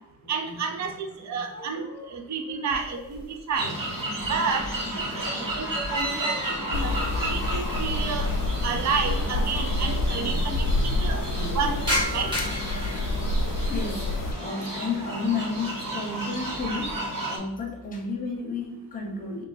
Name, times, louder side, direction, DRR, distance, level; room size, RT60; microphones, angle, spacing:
voice 1, 0.3-3.7 4.3-6.9 7.2-8.3 8.6-11.2 11.5-11.8 12.1-12.3, right 5 dB, 55° right, 4 dB, 0.5 m, -30 dB
voice 2, 1.2-2.2 2.5-3.1 4.0-7.3 8.7-8.8 10.0-12.3 13.7-19.5, left 4 dB, 25° left, 0 dB, 0.7 m, -35 dB
sound 1, 2.7-3.6 3.9-8.0 8.2-8.3 9.2-9.3 9.5-9.6 9.8-10.3 10.7-13.9 14.4-14.9 15.3-15.7 16.1-17.0, equal, 15° right, 1.2 m, -35 dB
sound 2, 3.5-17.4, right 1 dB, 70° right, 1.2 m, -33 dB
sound 3, 6.7-14.3, left 2 dB, 65° left, 0.5 m, -28 dB
3.2 x 2.2 x 3.9 m, 0.84 s
wide cardioid pair, 170°, 34 cm